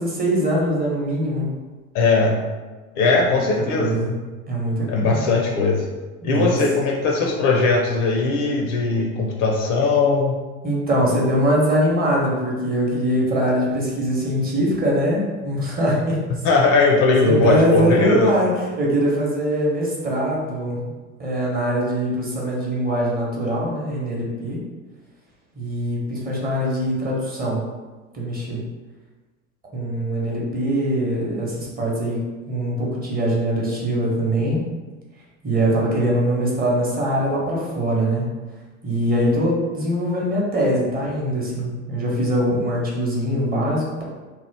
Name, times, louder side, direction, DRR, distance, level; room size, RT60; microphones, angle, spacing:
voice 1, 0.0-1.5 3.4-3.5 3.8-4.2 4.5-5.2 6.2-6.6 10.6-16.2 17.2-20.8 21.2-24.6 25.5-27.6 28.1-28.6 29.7-32.2 32.5-34.6 35.4-38.3 38.8-44.0, equal, 20° right, -4 dB, 0.9 m, -22 dB
voice 2, 1.9-2.4 3.0-4.0 4.9-5.9 6.2-10.4 16.4-18.3, left 3 dB, 45° left, 0 dB, 0.6 m, -19 dB
2.9 x 2.0 x 3.3 m, 1.3 s
hypercardioid pair, 75°, 42 cm